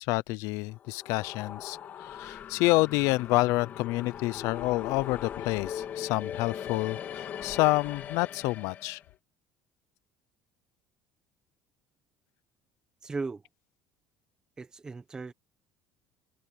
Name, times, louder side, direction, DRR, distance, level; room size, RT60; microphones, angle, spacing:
voice 1, 0.0-9.0, left 21 dB, 70° left, 0.6 m, -28 dB
sound 1, 0.7-9.0, left 9 dB, 35° left, 1.7 m, -40 dB
voice 2, 13.0-13.4 14.6-15.3, right 4 dB, 15° right, 1.1 m, -36 dB
cardioid pair, 170°, 5 cm